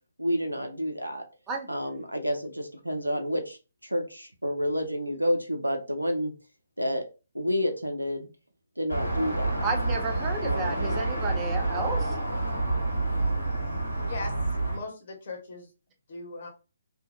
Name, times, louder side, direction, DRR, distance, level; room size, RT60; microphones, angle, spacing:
voice 1, 0.2-1.2 1.7-3.6 3.8-6.3 6.8-7.1 7.3-8.3 8.8-9.7 10.4-11.0, equal, 90° right, 0.5 m, -29 dB
sound 1, 8.9-14.8, right 2 dB, 90° left, 1.1 m, -28 dB
voice 2, 9.6-12.1, right 3 dB, 20° right, 0.5 m, -32 dB
voice 3, 14.0-14.3 14.7-15.7 16.1-16.5, left 3 dB, 45° left, 1.0 m, -38 dB
2.6 x 2.1 x 2.2 m
figure-of-eight pair, 135°, 0 cm